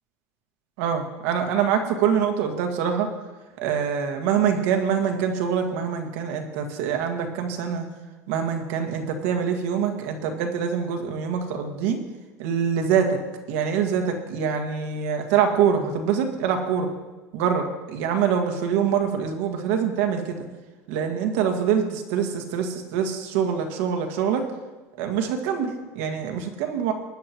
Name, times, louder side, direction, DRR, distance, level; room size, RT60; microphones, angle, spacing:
voice 1, 0.8-3.1 3.6-7.9 8.3-12.0 12.4-13.2 13.5-16.9 17.3-20.4 20.9-24.5 25.0-26.9, right 7 dB, 85° right, 4 dB, 1.9 m, -24 dB
20.5 x 11.0 x 3.0 m, 1.2 s
cardioid pair, 140°, 8 cm